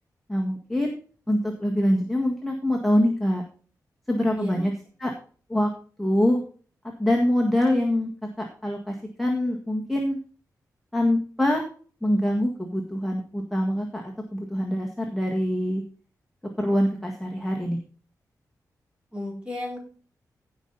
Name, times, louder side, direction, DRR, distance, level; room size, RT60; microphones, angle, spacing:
voice 1, 0.3-0.9 1.3-3.4 4.1-4.7 5.0-5.1 5.5-5.7 6.0-6.4 7.0-8.1 8.6-10.2 10.9-11.6 12.0-15.8 16.6-17.8, left 1 dB, ahead, 0 dB, 1.7 m, -24 dB
voice 2, 19.1-19.8, left 1 dB, 15° right, -1 dB, 4.7 m, -33 dB
16.5 x 5.6 x 4.0 m, 0.40 s
wide cardioid pair, 160°, 7 cm